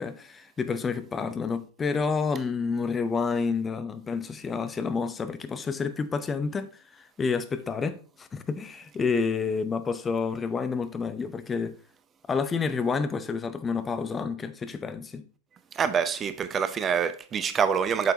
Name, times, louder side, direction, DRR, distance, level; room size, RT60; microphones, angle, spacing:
voice 1, 0.0-11.7 12.3-15.2, left 5 dB, 20° left, 0.7 m, -29 dB
voice 2, 15.7-18.1, right 7 dB, 25° right, 0.5 m, -26 dB
7.9 x 6.9 x 2.9 m
figure-of-eight pair, 90°, 0 cm